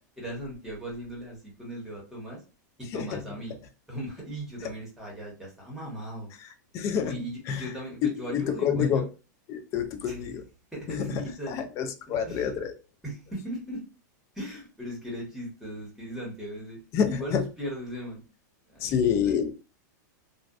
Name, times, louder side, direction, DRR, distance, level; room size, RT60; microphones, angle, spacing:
voice 1, 0.2-2.4 2.8-3.5 3.9-6.3 7.0-9.0 10.0-10.2 10.7-11.6 12.1-12.5 13.0-13.8 14.3-16.8 17.1-18.2 18.7-19.4, equal, 5° right, -3 dB, 1.1 m, -38 dB
voice 2, 6.7-7.7 8.3-9.0 9.5-10.4 10.9-11.2 11.5-12.7 16.9-17.4 18.8-19.5, left 7 dB, 30° left, 8 dB, 0.4 m, -28 dB
2.5 x 2.1 x 2.3 m, 0.33 s
supercardioid pair, 145°, 10 cm